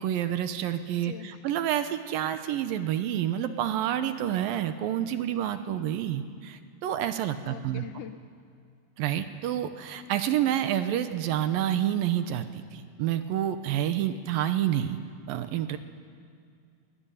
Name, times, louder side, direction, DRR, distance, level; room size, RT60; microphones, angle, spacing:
voice 1, 0.0-7.8 9.0-15.0 15.3-15.8, right 11 dB, 70° right, 10 dB, 2.4 m, -28 dB
voice 2, 1.0-1.4 7.4-8.2, left 12 dB, 80° left, 8 dB, 1.9 m, -42 dB
23.0 x 20.0 x 10.0 m, 2.3 s
omnidirectional pair, 4.7 m